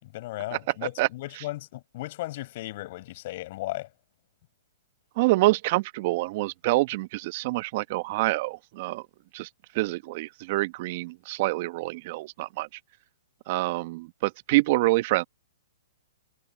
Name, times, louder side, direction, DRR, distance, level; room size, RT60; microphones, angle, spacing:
voice 1, 0.0-3.9, left 17 dB, 50° left, 5.2 m, -36 dB
voice 2, 5.2-9.1 9.3-9.5 9.7-12.7 13.5-15.2, right 20 dB, 45° right, 1.2 m, -26 dB
hypercardioid pair, 125°, 0 cm